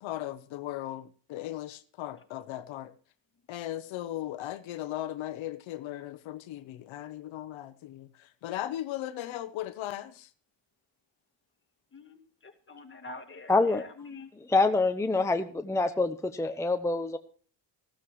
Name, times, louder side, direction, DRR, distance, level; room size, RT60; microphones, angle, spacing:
voice 1, 0.0-2.9 3.5-10.3, left 13 dB, 80° left, 1.0 m, -37 dB
voice 2, 11.9-14.3, left 3 dB, 25° left, 2.2 m, -46 dB
voice 3, 13.5-13.8 14.5-17.2, left 3 dB, 5° left, 0.8 m, -26 dB
15.5 x 13.0 x 3.1 m
cardioid pair, 105°, 46 cm